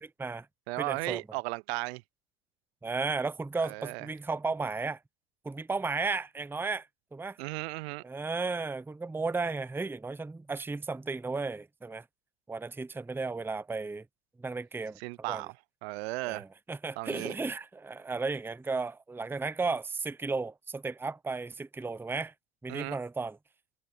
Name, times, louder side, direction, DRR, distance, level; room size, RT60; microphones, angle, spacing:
voice 1, 0.0-0.5 0.8-1.2 2.8-5.0 5.4-6.9 7.1-7.4 8.0-12.0 12.5-14.0 14.4-15.0 15.3-15.4 16.2-22.3 22.6-23.4, right 4 dB, 5° right, 0.7 m, -34 dB
voice 2, 0.7-2.0 3.6-4.1 7.4-8.0 15.0-15.5 15.8-16.4 17.0-17.4 22.7-23.0, right 24 dB, 70° right, 0.6 m, -35 dB
hypercardioid pair, 85°, 32 cm